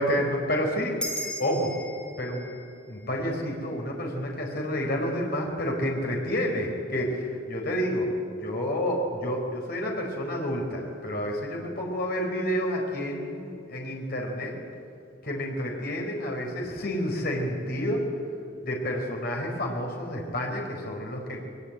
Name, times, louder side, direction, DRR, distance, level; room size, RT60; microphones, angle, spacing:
voice 1, 0.0-1.7 2.2-2.5 2.9-14.5 15.2-18.0 18.6-21.4, equal, 50° left, 0 dB, 4.3 m, -29 dB
sound 1, 1.0-5.7, equal, 5° left, 2.6 m, -40 dB
21.5 x 20.5 x 9.1 m, 2.5 s
head